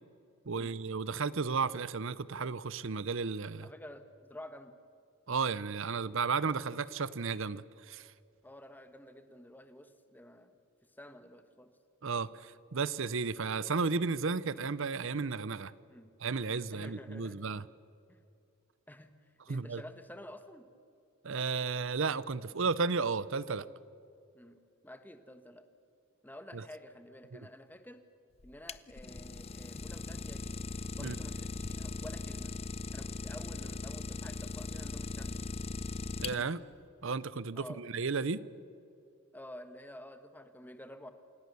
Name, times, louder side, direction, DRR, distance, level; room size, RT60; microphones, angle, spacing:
voice 1, 0.4-3.7 5.3-8.1 12.0-15.7 16.2-17.7 19.5-19.8 21.2-23.7 26.5-26.6 27.3-27.4 31.0-31.2 36.2-36.6 37.0-38.4, right 4 dB, 60° right, 18 dB, 0.7 m, -33 dB
voice 2, 3.6-4.7 8.4-10.6 11.0-11.7 15.9-16.1 16.7-17.5 18.1-18.2 18.9-19.1 19.5-20.7 24.3-24.6 24.8-25.6 26.2-28.0 28.4-30.6 30.9-32.5 32.9-35.4 37.6-37.8 39.3-41.1, left 1 dB, 10° left, 9 dB, 1.2 m, -50 dB
Idling, 28.4-36.7, left 3 dB, 25° left, 0.5 m, -39 dB
28.0 x 17.0 x 6.9 m, 2.5 s
head